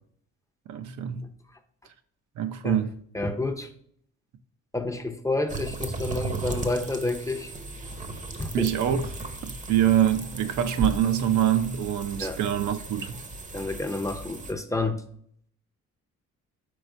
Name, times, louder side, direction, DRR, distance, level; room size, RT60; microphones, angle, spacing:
voice 1, 0.7-1.3 2.4-2.9 8.5-9.1 9.4-13.1, right 10 dB, 75° right, 0.6 m, -25 dB
voice 2, 3.1-3.7 4.7-7.5 8.4-8.7 12.2-12.4 13.5-15.0, left 2 dB, 10° left, 0.5 m, -29 dB
sound 1, 5.5-14.5, right 2 dB, 25° right, 0.7 m, -36 dB
4.8 x 4.0 x 2.6 m
cardioid pair, 90°, 30 cm